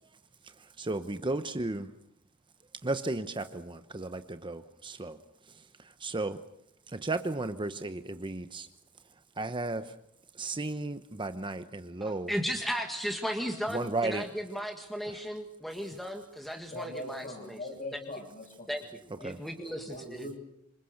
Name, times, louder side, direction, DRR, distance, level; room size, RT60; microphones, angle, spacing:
voice 1, 0.8-1.9 2.8-5.2 6.0-6.4 6.9-8.7 9.4-9.9 10.4-12.3 13.7-14.2 19.2-19.4, right 2 dB, 25° right, 10 dB, 0.9 m, -34 dB
voice 2, 12.0-18.0 18.7-20.3, equal, ahead, 4 dB, 1.8 m, -36 dB
voice 3, 16.7-18.7 19.2-19.3 19.6-20.4, left 1 dB, 40° left, 4 dB, 7.2 m, -41 dB
27.0 x 25.5 x 6.6 m, 0.76 s
head